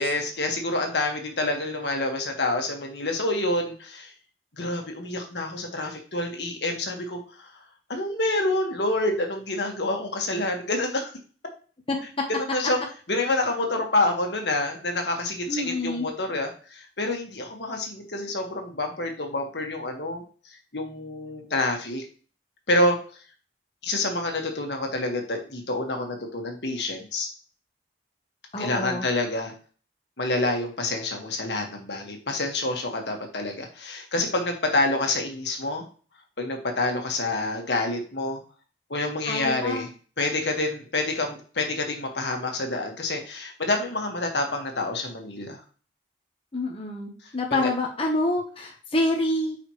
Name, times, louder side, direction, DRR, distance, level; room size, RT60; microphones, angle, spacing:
voice 1, 0.0-4.1 4.6-7.5 7.9-11.1 12.3-12.8 13.1-20.2 20.7-22.0 22.7-23.0 23.8-27.3 28.6-29.5 30.2-35.9 36.4-38.4 38.9-39.9 40.2-45.6 47.5-47.7, left 2 dB, 70° left, 3 dB, 1.8 m, -27 dB
voice 2, 15.5-16.1 28.5-29.1 39.3-39.9 46.5-49.6, left 2 dB, 30° left, 1 dB, 1.2 m, -27 dB
9.0 x 5.0 x 3.2 m, 0.40 s
head